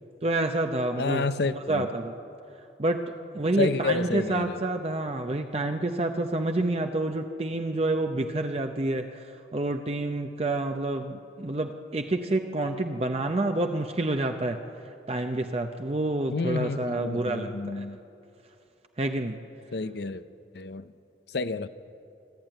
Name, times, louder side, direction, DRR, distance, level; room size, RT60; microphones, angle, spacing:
voice 1, 0.2-2.1 2.8-14.6 15.1-17.9 19.0-19.4, right 2 dB, 35° right, 5 dB, 0.7 m, -28 dB
voice 2, 1.0-1.9 3.6-4.6 16.3-18.0 19.7-20.2 20.5-20.9 21.3-21.7, left 3 dB, 65° left, 13 dB, 0.6 m, -29 dB
25.0 x 12.5 x 9.0 m, 2.7 s
head